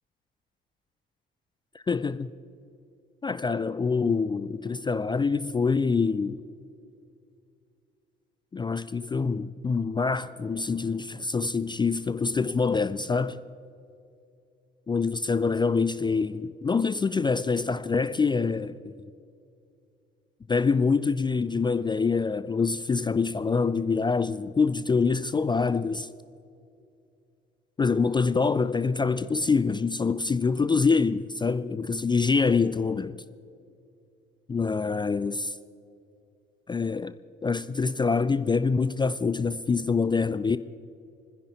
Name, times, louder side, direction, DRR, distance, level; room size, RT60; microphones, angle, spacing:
voice 1, 1.7-2.3 3.2-6.4 8.5-13.4 14.9-18.8 20.5-26.1 27.8-33.2 34.5-35.6 36.7-37.1 37.4-40.6, left 4 dB, 15° left, 0.4 m, -25 dB
27.5 x 10.5 x 4.3 m
figure-of-eight pair, 50°, 30 cm